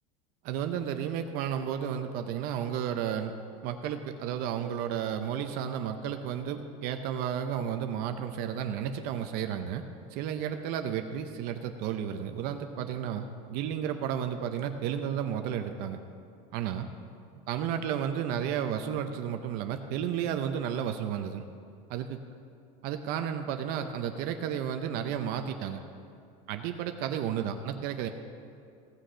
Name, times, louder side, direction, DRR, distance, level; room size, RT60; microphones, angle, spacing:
voice 1, 0.4-3.3 3.6-9.8 10.1-16.0 16.5-16.9 17.5-21.4 21.9-22.2 22.8-25.8 26.5-28.1, right 9 dB, 50° right, 7 dB, 0.7 m, -32 dB
16.5 x 6.4 x 5.6 m, 2.4 s
supercardioid pair, 140°, 19 cm